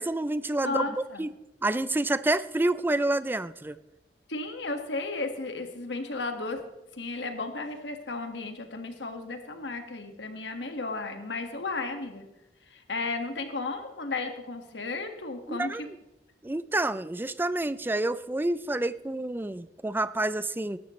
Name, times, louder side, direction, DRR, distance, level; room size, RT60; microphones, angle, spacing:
voice 1, 0.0-0.8 1.2-1.3 1.6-3.8 15.5-15.8 16.4-20.8, right 2 dB, 10° right, 14 dB, 0.4 m, -28 dB
voice 2, 0.6-1.3 4.3-6.6 7.0-12.3 12.7-15.9, left 3 dB, 80° left, 6 dB, 1.8 m, -34 dB
18.5 x 12.5 x 3.2 m, 0.96 s
head